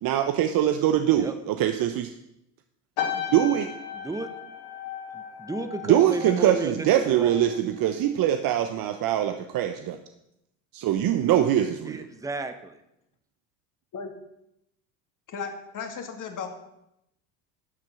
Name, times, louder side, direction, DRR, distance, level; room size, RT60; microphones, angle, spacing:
voice 1, 0.0-2.1 3.2-3.7 5.9-10.0 10.7-12.0, right 11 dB, 50° right, 7 dB, 1.0 m, -23 dB
sound 1, 3.0-7.6 7.9-8.3, left 9 dB, 70° left, 2.4 m, -35 dB
voice 2, 3.9-4.3 5.1-7.6 11.8-12.8, right 3 dB, 10° right, 8 dB, 1.1 m, -33 dB
voice 3, 15.3-16.5, left 6 dB, 45° left, 4 dB, 2.4 m, -35 dB
12.0 x 7.5 x 6.2 m, 0.83 s
hypercardioid pair, 80°, 43 cm